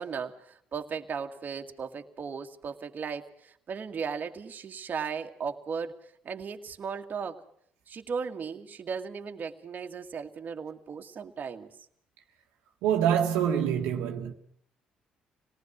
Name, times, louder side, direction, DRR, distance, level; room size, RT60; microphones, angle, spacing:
voice 1, 0.0-6.0 6.2-7.4 7.9-11.7, right 6 dB, 50° right, 2.0 m, -36 dB
voice 2, 12.8-14.3, right 9 dB, 80° right, 1.7 m, -25 dB
26.0 x 19.0 x 6.1 m
hypercardioid pair, 55°, 4 cm